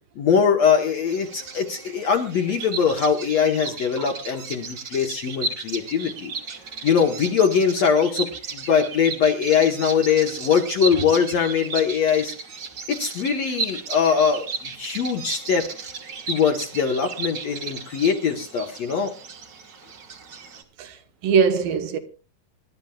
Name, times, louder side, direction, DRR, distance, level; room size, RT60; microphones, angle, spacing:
voice 1, 0.2-6.3 6.8-12.3 12.9-15.7 16.3-19.1, left 6 dB, 60° left, 1.9 m, -22 dB
Bird vocalization bird call bird song, 1.1-20.6, right 4 dB, 55° right, 1.2 m, -35 dB
voice 2, 20.8-22.0, right 5 dB, 75° right, 2.9 m, -22 dB
25.5 x 12.0 x 2.3 m
omnidirectional pair, 4.3 m